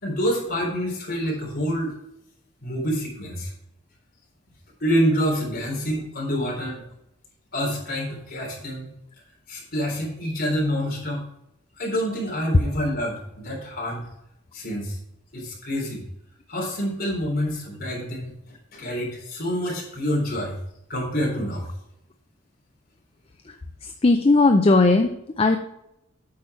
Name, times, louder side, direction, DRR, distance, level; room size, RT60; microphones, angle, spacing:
voice 1, 0.0-1.9 2.6-3.5 4.8-6.8 7.5-8.9 9.5-11.2 11.8-14.0 14.5-15.0 15.3-16.1 16.5-18.3 18.7-20.6 20.9-21.7, equal, 50° left, -2 dB, 3.7 m, -27 dB
voice 2, 24.0-25.6, left 3 dB, 30° left, 5 dB, 0.5 m, -17 dB
8.6 x 6.0 x 4.4 m, 0.84 s
head